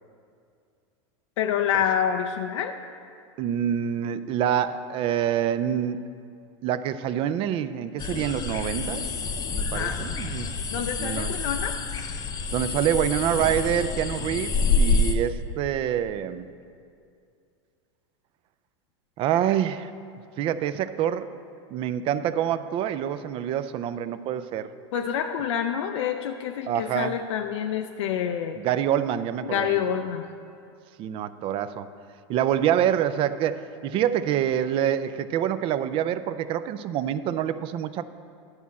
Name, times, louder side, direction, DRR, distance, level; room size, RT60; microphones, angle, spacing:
voice 1, 1.4-2.8 9.7-10.1 10.5-11.8 24.9-28.6 29.4-30.3, left 9 dB, 80° left, 5 dB, 0.5 m, -27 dB
voice 2, 3.4-6.0 6.6-9.0 9.5-10.6 11.0-11.3 12.5-16.5 19.2-19.9 20.4-21.3 21.7-24.7 26.7-27.1 28.6-29.8 31.0-31.9 32.3-38.1, right 10 dB, 35° right, 13 dB, 0.4 m, -26 dB
sound 1, 8.0-15.1, left 3 dB, 25° left, 0.6 m, -27 dB
10.5 x 4.2 x 7.3 m, 2.4 s
supercardioid pair, 130°, 15 cm